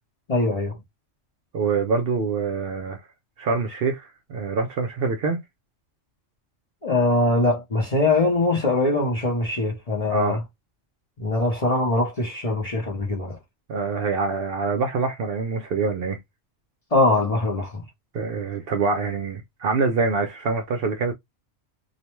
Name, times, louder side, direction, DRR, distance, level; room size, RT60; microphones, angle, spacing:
voice 1, 0.3-0.8 6.8-10.4 11.2-13.4 16.9-17.8, left 2 dB, 40° left, 0.6 m, -22 dB
voice 2, 1.5-3.0 3.4-5.4 10.1-10.4 13.7-16.2 18.1-21.1, right 4 dB, 60° right, 0.6 m, -25 dB
2.5 x 2.1 x 3.0 m
omnidirectional pair, 1.3 m